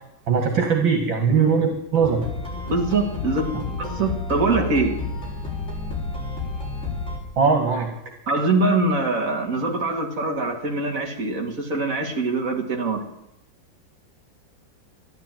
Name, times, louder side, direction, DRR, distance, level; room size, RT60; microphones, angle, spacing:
voice 1, 0.3-2.2 7.4-7.9, right 5 dB, 80° right, 4 dB, 2.9 m, -20 dB
sound 1, 2.0-7.2, left 3 dB, 35° left, 7.1 m, -30 dB
voice 2, 2.7-5.0 8.3-13.0, right 2 dB, 45° right, 2 dB, 2.7 m, -23 dB
13.5 x 11.5 x 9.2 m, 0.84 s
omnidirectional pair, 2.1 m